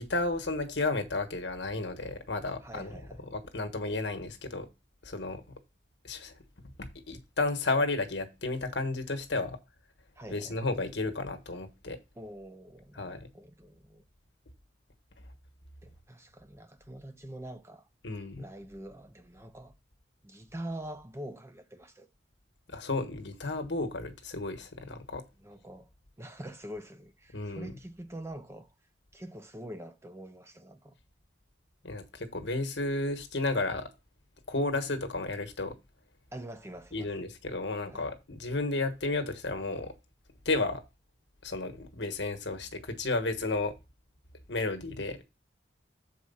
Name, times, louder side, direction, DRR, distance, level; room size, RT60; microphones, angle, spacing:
voice 1, 0.0-3.0 3.3-4.7 5.0-5.5 6.0-6.4 6.8-9.6 10.3-12.0 12.9-13.3 18.0-18.4 22.7-25.2 27.3-27.7 31.8-33.9 34.5-35.8 36.9-39.9 40.4-40.8 41.4-43.7 44.5-45.2, left 2 dB, 70° left, 1.3 m, -32 dB
voice 2, 2.6-3.2 10.1-10.6 12.2-14.0 15.8-17.9 18.4-19.7 20.2-22.1 25.4-25.9 26.2-28.7 29.1-31.0 36.3-37.1 37.9-38.1, right 1 dB, 15° right, 0.6 m, -45 dB
7.0 x 4.8 x 5.5 m
head